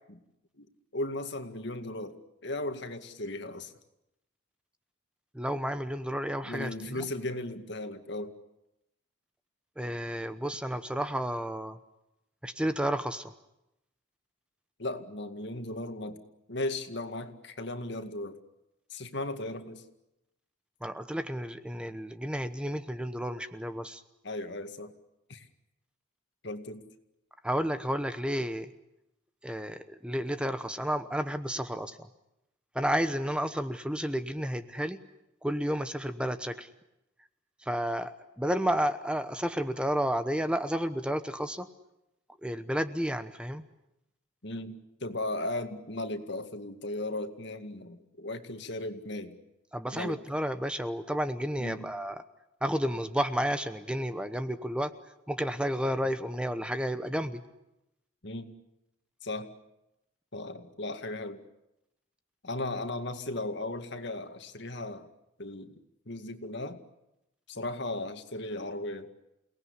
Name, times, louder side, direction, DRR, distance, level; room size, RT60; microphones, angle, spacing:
voice 1, 0.9-2.2 2.4-3.7 6.4-8.3 14.8-16.2 16.5-18.4 18.9-19.8 24.2-24.9 25.3-25.4 26.4-26.8 44.4-49.4 49.9-50.2 51.6-51.9 58.2-58.5 59.2-59.5 60.3-61.4 62.4-65.1 65.4-65.7 66.1-66.8 67.5-69.1, left 2 dB, 65° left, 7 dB, 2.2 m, -36 dB
voice 2, 5.3-7.0 9.8-11.8 12.4-13.3 20.8-24.0 27.4-28.7 29.4-32.1 32.7-35.0 35.4-36.7 37.7-38.1 38.4-41.7 42.4-43.6 49.7-52.2 52.6-54.9 55.3-57.4, equal, 5° right, 10 dB, 1.0 m, -31 dB
29.0 x 19.0 x 9.8 m, 0.90 s
head